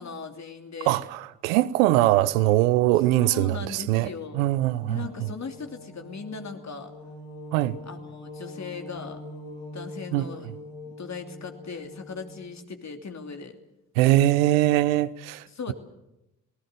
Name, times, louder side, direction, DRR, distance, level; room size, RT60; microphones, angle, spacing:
voice 1, 0.0-1.0 3.2-4.5 4.9-6.9 7.8-9.2 9.7-10.6 10.9-13.6 15.5-15.7, left 5 dB, 45° left, 3.0 m, -38 dB
voice 2, 0.9-4.1 4.3-5.0 7.5-7.8 10.1-10.3 14.0-15.4, right 16 dB, 80° right, 0.8 m, -22 dB
sound 1, 4.5-12.4, left 2 dB, 80° left, 5.8 m, -43 dB
27.5 x 19.0 x 6.8 m
hypercardioid pair, 40°, 40 cm